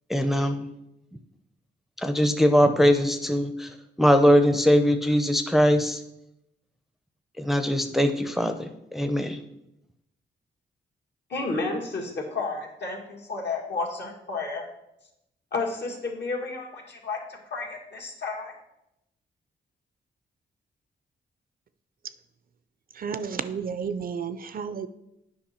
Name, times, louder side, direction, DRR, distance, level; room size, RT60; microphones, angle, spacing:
voice 1, 0.1-0.7 2.0-3.7 4.0-6.0 7.4-8.7 8.9-9.4, equal, ahead, 7 dB, 0.6 m, -21 dB
voice 2, 11.3-14.6 15.5-18.5, left 3 dB, 65° left, 0 dB, 1.9 m, -32 dB
voice 3, 23.0-24.9, right 6 dB, 50° right, 13 dB, 0.5 m, -32 dB
8.5 x 5.2 x 4.3 m, 0.86 s
cardioid pair, 80°, 19 cm